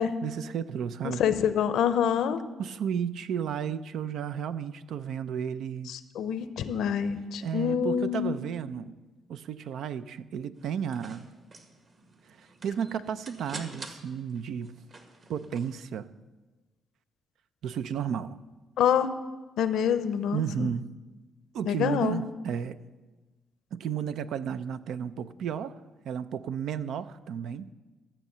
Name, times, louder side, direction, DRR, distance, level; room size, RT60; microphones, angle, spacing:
voice 1, 0.2-1.2 2.6-6.0 7.4-9.0 9.3-11.3 12.4-14.7 15.3-16.1 17.6-18.4 20.3-20.9 21.5-22.8 23.7-25.8 26.0-27.7, right 8 dB, 75° right, 13 dB, 0.5 m, -33 dB
voice 2, 1.0-2.4 5.9-8.4 18.8-19.1 19.6-20.7 21.7-22.2, left 8 dB, 80° left, 12 dB, 0.7 m, -26 dB
sound 1, 10.6-15.8, right 3 dB, 45° right, 1.7 m, -47 dB
13.5 x 7.2 x 6.8 m, 1.2 s
cardioid pair, 90°, 0 cm